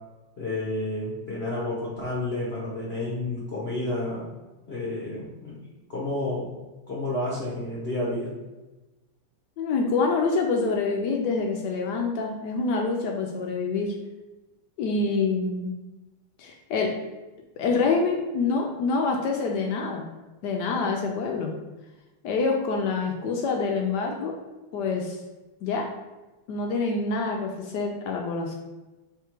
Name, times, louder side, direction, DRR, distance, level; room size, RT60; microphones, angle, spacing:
voice 1, 0.4-4.2 4.7-5.6 5.9-6.5 6.9-8.3, left 1 dB, 65° left, -6 dB, 0.6 m, -30 dB
voice 2, 9.6-13.9 14.8-15.7 16.4-16.9 17.6-20.1 20.4-21.5 22.2-24.3 24.7-25.2 25.6-25.9 26.5-28.5, left 4 dB, 85° left, 1 dB, 0.9 m, -26 dB
3.5 x 3.3 x 4.4 m, 1.1 s
omnidirectional pair, 2.4 m